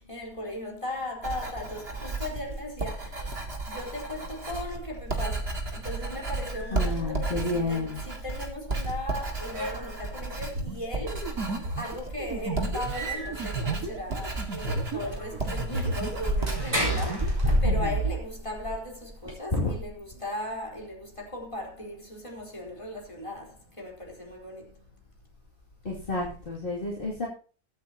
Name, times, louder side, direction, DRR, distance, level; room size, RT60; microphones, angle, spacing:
voice 1, 0.0-3.4 3.6-24.9, left 1 dB, 20° left, 4.3 m, -38 dB
Writing, 1.2-17.3, right 3 dB, 40° right, 2.4 m, -34 dB
sound 1, 6.5-7.0 7.5-7.6 8.9-9.0 9.2-10.2 10.9-11.0 11.4-11.5 12.0-12.1 12.4-12.5 12.9-13.5 14.0-14.1 14.3-14.4 14.9-19.3, equal, 20° right, 4.4 m, -30 dB
voice 2, 6.7-8.0 17.6-18.0 19.5-19.8 25.8-27.3, left 2 dB, 35° left, 2.9 m, -30 dB
sound 2, 10.5-16.3 16.6-18.2, right 3 dB, 85° right, 2.4 m, -33 dB
22.5 x 8.6 x 2.9 m
omnidirectional pair, 1.6 m